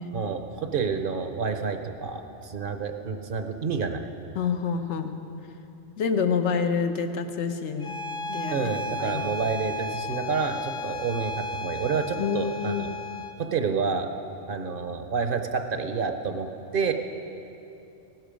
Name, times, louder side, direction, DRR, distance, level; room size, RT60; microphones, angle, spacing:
voice 1, 0.1-4.0 8.5-12.9 13.4-14.1 14.5-16.5 16.7-16.9, right 5 dB, 55° right, 7 dB, 0.9 m, -29 dB
voice 2, 4.3-5.1 6.0-8.0 8.3-9.2 12.2-12.9, left 6 dB, 75° left, 7 dB, 1.1 m, -28 dB
Bowed string instrument, 7.8-13.4, left 2 dB, 55° left, 1.0 m, -34 dB
16.5 x 12.0 x 5.1 m, 2.8 s
omnidirectional pair, 1.2 m